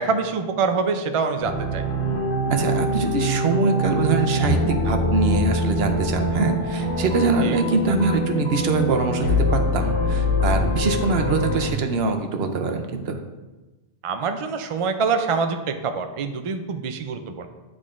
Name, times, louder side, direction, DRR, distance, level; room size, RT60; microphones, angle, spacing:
voice 1, 0.0-1.8 7.4-7.6 14.0-17.5, right 5 dB, 50° right, 6 dB, 0.4 m, -25 dB
sound 1, 1.4-11.7, left 1 dB, 85° left, 1.4 m, -24 dB
voice 2, 2.5-13.2, right 4 dB, 70° right, 5 dB, 0.9 m, -23 dB
10.5 x 3.7 x 2.5 m, 1.1 s
omnidirectional pair, 1.1 m